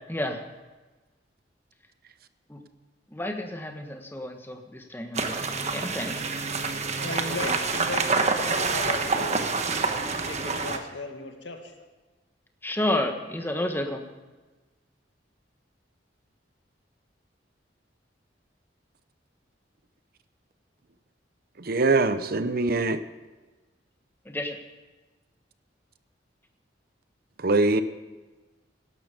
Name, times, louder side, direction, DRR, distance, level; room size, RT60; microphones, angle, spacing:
voice 1, 0.1-0.4 2.5-2.6 3.1-5.3 5.7-6.2 7.4-7.5 12.6-14.1 24.3-24.6, left 1 dB, 10° left, 4 dB, 1.4 m, -30 dB
sound 1, 5.1-10.8, right 4 dB, 40° right, 1.2 m, -27 dB
voice 2, 7.0-9.5 10.3-11.7, left 3 dB, 75° left, 4 dB, 2.1 m, -36 dB
voice 3, 21.7-23.0 27.4-27.8, right 3 dB, 55° right, 12 dB, 0.8 m, -22 dB
17.5 x 12.5 x 5.1 m, 1.2 s
head